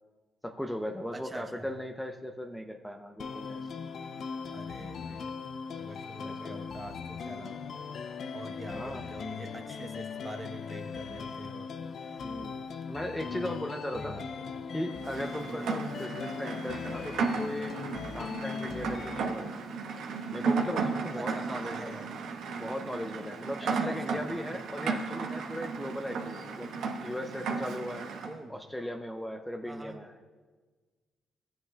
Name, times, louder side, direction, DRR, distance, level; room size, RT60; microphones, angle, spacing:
voice 1, 0.4-3.7 6.2-6.6 8.7-9.1 12.2-12.6 12.9-14.2 14.7-17.7 18.1-19.5 20.3-22.1 22.6-26.7 27.0-28.1 28.5-30.1, equal, 5° left, 4 dB, 0.6 m, -38 dB
voice 2, 1.1-1.7 4.5-5.4 5.7-7.6 8.0-12.3 13.2-13.5 13.9-14.5 15.5-15.8 21.1-22.0 23.6-24.2 26.1-26.3 28.2-28.6 29.7-30.0, right 1 dB, 25° right, 6 dB, 0.9 m, -45 dB
sound 1, 3.2-19.2, left 5 dB, 60° left, 0.5 m, -39 dB
Rain, 15.0-28.3, right 4 dB, 80° right, 0.9 m, -34 dB
14.5 x 8.7 x 2.2 m, 1.4 s
cardioid pair, 90°, 0 cm